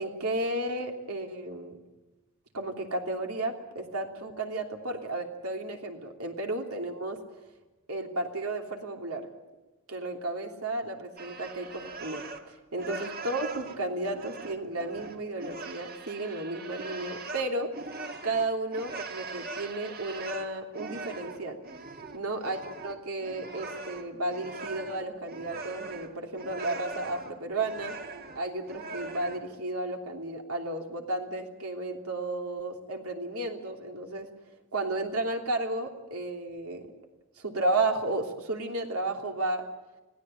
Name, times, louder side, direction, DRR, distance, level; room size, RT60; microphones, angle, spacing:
voice 1, 0.0-1.8 2.5-7.2 7.9-9.3 9.9-17.7 18.2-21.6 22.1-28.0 28.3-34.3 34.7-36.9 37.4-39.6, right 2 dB, 85° right, 2 dB, 3.1 m, -33 dB
sound 1, 11.2-12.5 12.8-29.5, right 3 dB, 45° right, 1.7 m, -41 dB
25.5 x 17.0 x 8.9 m, 1.1 s
head